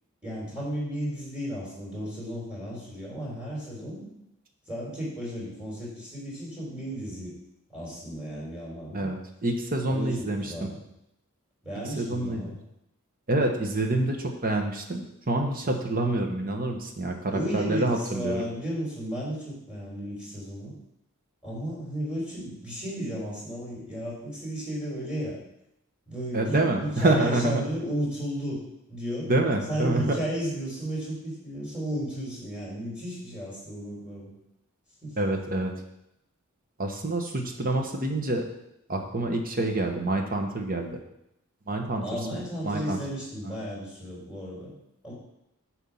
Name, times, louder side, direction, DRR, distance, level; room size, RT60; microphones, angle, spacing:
voice 1, 0.2-4.1 4.7-7.3 7.7-9.1 9.9-10.8 11.6-12.6 17.3-20.7 21.4-25.4 26.1-28.6 28.9-29.3 29.7-34.3 35.0-35.2 42.0-44.7 45.0-45.1, equal, 5° right, -6 dB, 3.6 m, -34 dB
voice 2, 8.9-10.5 12.0-12.4 13.3-18.4 26.3-27.6 29.3-30.2 35.2-35.7 36.8-38.5 38.9-41.0 41.7-42.0 42.6-43.0 43.5-43.6, right 2 dB, 40° right, 4 dB, 1.1 m, -27 dB
7.9 x 4.6 x 7.1 m, 0.83 s
head